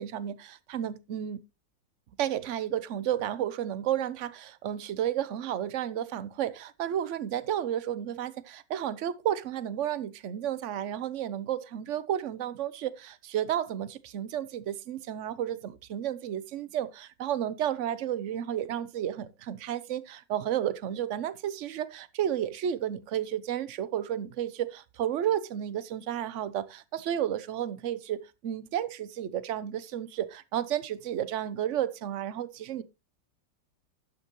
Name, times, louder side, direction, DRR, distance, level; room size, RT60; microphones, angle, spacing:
voice 1, 0.0-1.4 2.2-32.8, right 10 dB, 60° right, 0.8 m, -32 dB
12.0 x 8.7 x 3.0 m
omnidirectional pair, 2.1 m